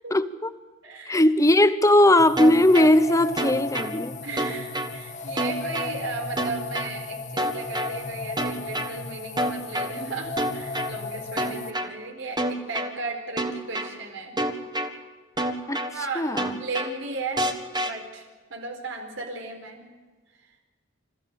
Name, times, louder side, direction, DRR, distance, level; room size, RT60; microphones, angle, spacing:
voice 1, 0.1-0.5 1.1-4.1 15.7-15.8 16.2-16.6, left 1 dB, 15° left, 12 dB, 0.9 m, -19 dB
voice 2, 0.8-1.2 4.2-14.4 15.9-16.3 16.6-17.5 17.8-19.9, right 3 dB, 90° right, 2 dB, 4.7 m, -35 dB
sound 1, 2.2-11.7, left 3 dB, 40° left, 1.3 m, -35 dB
sound 2, 2.4-2.9 3.4-3.9 4.4-4.9 5.4-5.9 6.4-6.9 7.4-7.9 8.4-8.9 9.4-9.9 10.4-10.9 11.4-11.9 12.4-12.9 13.4-13.9 14.4-14.9 15.4-15.9 16.4-16.9 17.4-17.9, right 1 dB, 20° right, 1.7 m, -27 dB
27.0 x 14.5 x 7.7 m, 1.3 s
head